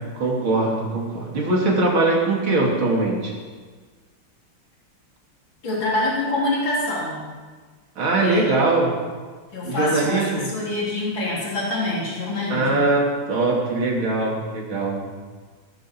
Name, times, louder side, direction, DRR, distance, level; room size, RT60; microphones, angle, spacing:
voice 1, 0.2-3.3 8.0-9.0 9.6-10.5 12.5-15.1, right 2 dB, 80° right, -1 dB, 3.5 m, -21 dB
voice 2, 5.6-7.2 8.2-8.5 9.5-12.9, left 2 dB, 70° left, -5 dB, 4.1 m, -25 dB
18.5 x 13.0 x 4.6 m, 1.5 s
omnidirectional pair, 2.2 m